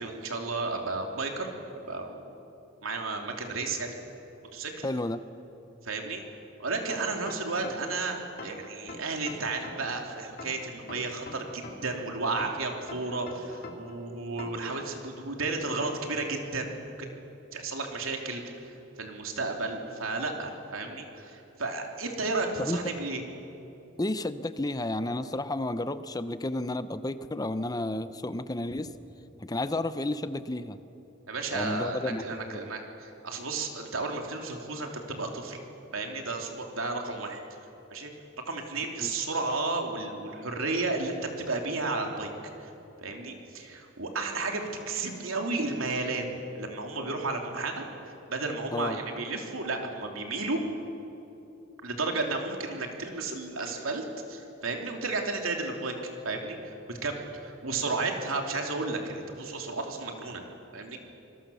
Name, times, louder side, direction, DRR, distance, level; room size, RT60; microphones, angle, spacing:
voice 1, 0.0-1.5 1.9-2.3 2.8-4.0 4.5-4.9 5.8-6.2 6.6-16.9 17.5-18.7 19.0-23.2 31.3-35.6 35.9-37.4 37.9-38.1 38.5-42.3 42.6-42.7 43.0-47.8 48.3-50.6 51.8-55.9 56.2-60.4 60.7-61.0, right 3 dB, 90° right, 2 dB, 3.0 m, -33 dB
voice 2, 4.8-5.2 22.6-22.8 24.0-28.9 29.4-30.8 31.5-32.7 39.0-39.1 48.7-49.0, left 2 dB, 20° left, 13 dB, 0.6 m, -32 dB
sound 1, 6.9-8.0 8.4-10.0 10.4-12.0 12.4-14.0 14.4-14.7, left 2 dB, 45° left, 2.6 m, -43 dB
26.0 x 20.5 x 7.0 m, 2.9 s
head